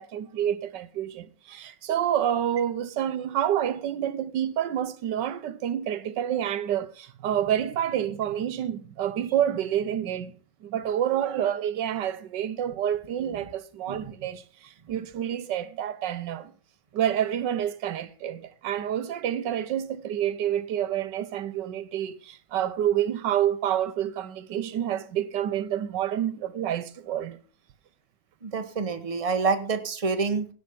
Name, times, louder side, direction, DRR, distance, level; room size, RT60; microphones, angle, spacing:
voice 1, 0.0-10.3 10.6-16.5 16.9-27.4, right 10 dB, 80° right, 1.4 m, -28 dB
voice 2, 28.4-30.5, right 4 dB, 20° right, 1.2 m, -27 dB
16.5 x 5.6 x 6.8 m
omnidirectional pair, 1.9 m